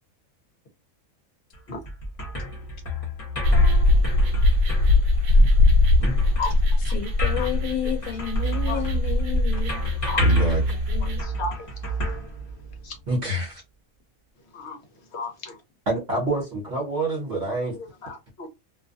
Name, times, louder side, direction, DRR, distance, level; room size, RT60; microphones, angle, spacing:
sound 1, 1.5-13.0, right 1 dB, 30° left, 0.9 m, -29 dB
sound 2, 3.4-11.2, left 2 dB, 80° right, 1.0 m, -20 dB
voice 1, 6.9-9.8 10.9-11.2, left 10 dB, 80° left, 1.0 m, -31 dB
voice 2, 10.2-10.6 13.1-13.6 15.9-17.8, right 1 dB, 50° right, 1.3 m, -26 dB
voice 3, 11.0-11.7 12.8-12.9 14.5-14.8 15.1-15.6 17.7-18.5, left 3 dB, 55° left, 1.0 m, -33 dB
2.6 x 2.3 x 2.5 m
omnidirectional pair, 1.5 m